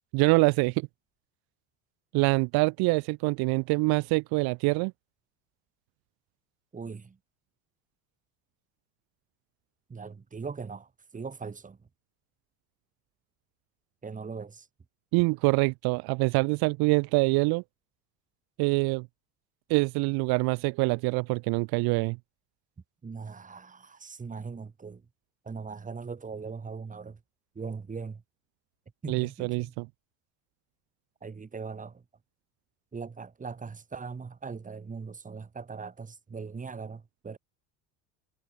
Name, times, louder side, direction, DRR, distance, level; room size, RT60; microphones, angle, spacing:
voice 1, 0.1-0.9 2.1-4.9 15.1-17.6 18.6-19.1 19.7-22.2 29.1-29.9, right 27 dB, 70° right, 1.0 m, -25 dB
voice 2, 6.7-7.2 9.9-11.8 14.0-14.7 23.0-25.0 25.4-27.2 27.6-28.2 29.0-29.7 31.2-32.0 32.9-37.4, right 5 dB, 20° right, 2.2 m, -40 dB
supercardioid pair, 105°, 38 cm